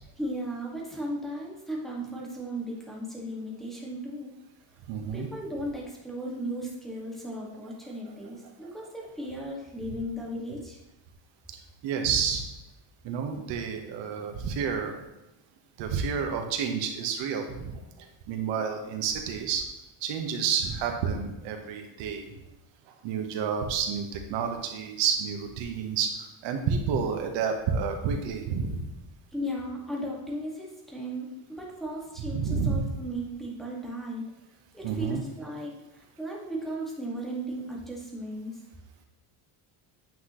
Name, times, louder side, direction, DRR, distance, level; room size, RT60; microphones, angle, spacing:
voice 1, 0.2-4.4 5.1-10.8 29.3-34.2 34.7-38.6, equal, ahead, -4 dB, 1.8 m, -36 dB
voice 2, 4.9-5.3 11.8-12.4 13.0-15.0 15.8-17.7 18.3-19.6 20.0-22.3 23.0-26.1 26.4-28.9 32.3-32.8 34.8-35.2, right 6 dB, 85° right, 4 dB, 1.3 m, -29 dB
9.2 x 5.8 x 3.1 m, 0.98 s
cardioid pair, 130°, 43 cm